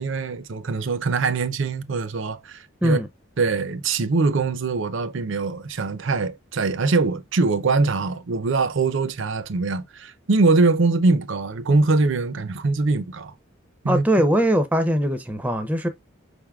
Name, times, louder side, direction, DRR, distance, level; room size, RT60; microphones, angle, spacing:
voice 1, 0.0-3.0 3.4-13.3 13.8-14.0, right 3 dB, 65° right, 0.5 m, -22 dB
voice 2, 13.9-15.9, equal, 5° right, 0.4 m, -21 dB
5.3 x 3.5 x 2.3 m
head